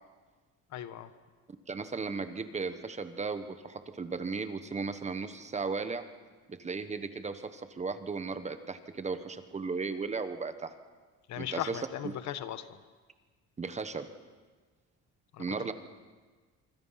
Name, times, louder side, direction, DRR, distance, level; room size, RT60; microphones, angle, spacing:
voice 1, 0.7-1.1 11.3-12.8 15.3-15.6, left 11 dB, 65° left, 11 dB, 1.4 m, -38 dB
voice 2, 1.7-6.1 6.5-10.7 11.4-11.8 13.6-14.1 15.4-15.7, right 4 dB, 25° right, 10 dB, 1.2 m, -36 dB
26.0 x 24.5 x 5.8 m, 1.4 s
cardioid pair, 140°, 30 cm